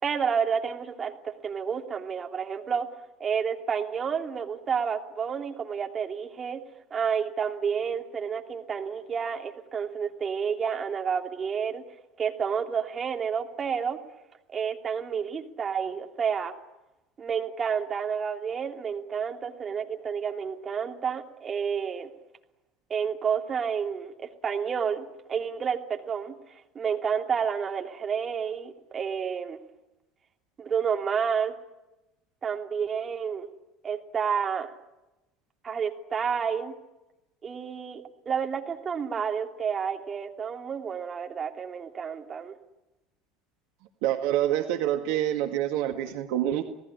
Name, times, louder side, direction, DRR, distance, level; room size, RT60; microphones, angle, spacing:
voice 1, 0.0-2.9 3.2-6.6 6.9-11.8 12.2-14.0 14.5-16.5 17.2-22.1 22.9-24.1 24.4-26.3 26.7-29.6 30.6-31.5 32.4-33.5 33.8-34.7 35.6-36.7 37.4-42.5, right 7 dB, 30° right, 4 dB, 2.9 m, -30 dB
voice 2, 44.0-46.6, right 12 dB, 60° right, 6 dB, 1.8 m, -26 dB
28.0 x 19.0 x 10.0 m, 0.99 s
figure-of-eight pair, 70°, 0 cm